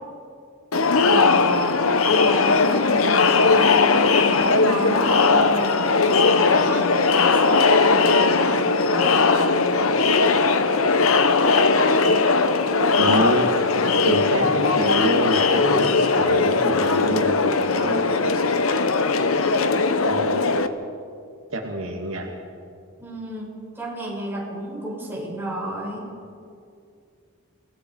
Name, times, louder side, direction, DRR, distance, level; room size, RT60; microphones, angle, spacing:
Crowd, 0.7-20.7, left 4 dB, 85° left, 1.0 m, -19 dB
voice 1, 1.1-1.7 2.0-5.8 6.2-9.9 23.0-26.1, equal, 10° right, -4 dB, 6.0 m, -31 dB
voice 2, 12.9-18.3 20.0-20.8 21.5-22.3, right 1 dB, 70° right, 1 dB, 2.3 m, -27 dB
28.5 x 19.0 x 4.8 m, 2.4 s
head